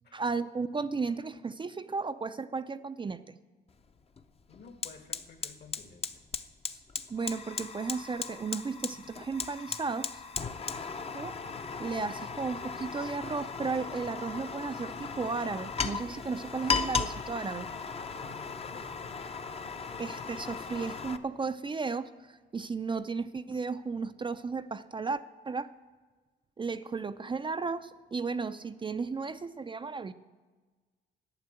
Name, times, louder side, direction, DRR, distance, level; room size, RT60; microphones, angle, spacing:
voice 1, 0.1-3.3 7.1-10.2 11.1-11.3 11.8-17.7 20.0-25.7 26.6-30.1, right 4 dB, 25° right, 10 dB, 0.5 m, -34 dB
Fire, 3.7-3.8 4.2-21.2, left 5 dB, 30° left, 0.7 m, -37 dB
voice 2, 4.5-6.2 17.9-19.1, left 5 dB, 55° left, 8 dB, 1.7 m, -52 dB
11.5 x 8.7 x 7.7 m, 1.3 s
cardioid pair, 90°, 20 cm